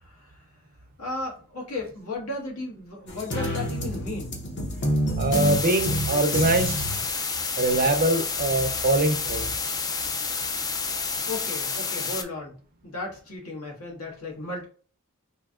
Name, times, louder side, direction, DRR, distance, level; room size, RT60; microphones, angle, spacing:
voice 1, 1.0-4.3 11.3-12.5 12.8-14.6, left 2 dB, 80° left, 1.5 m, -35 dB
sound 1, 3.1-7.1, equal, 55° left, 0.9 m, -28 dB
voice 2, 5.2-6.7 7.6-9.5, right 2 dB, 45° right, 0.6 m, -23 dB
sound 2, 5.3-12.2, left 4 dB, 15° left, 0.3 m, -29 dB
4.4 x 2.7 x 2.4 m
head